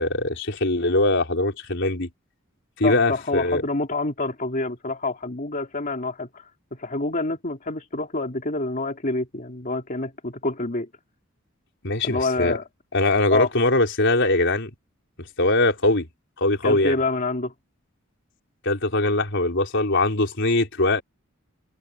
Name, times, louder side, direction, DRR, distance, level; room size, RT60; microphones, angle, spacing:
voice 1, 0.0-2.1 2.8-3.6 11.8-12.6 12.9-14.7 15.2-16.1 16.4-17.0 18.6-21.0, left 2 dB, 60° left, 4.4 m, -22 dB
voice 2, 2.8-10.9 12.0-12.6 13.3-13.5 16.6-17.5, left 2 dB, 40° left, 2.9 m, -27 dB
head